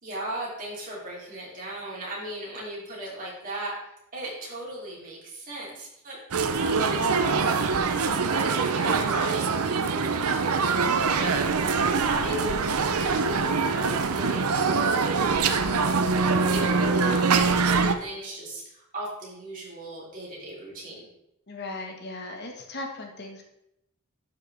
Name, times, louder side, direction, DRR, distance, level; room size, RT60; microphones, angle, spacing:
voice 1, 0.0-7.9 8.2-11.4 12.0-21.1, right 1 dB, 40° right, -5 dB, 3.2 m, -37 dB
sound 1, 6.3-18.0, right 4 dB, 75° right, 0.7 m, -24 dB
voice 2, 21.5-23.4, left 2 dB, 50° left, 2 dB, 1.4 m, -37 dB
12.0 x 5.9 x 3.4 m, 0.84 s
head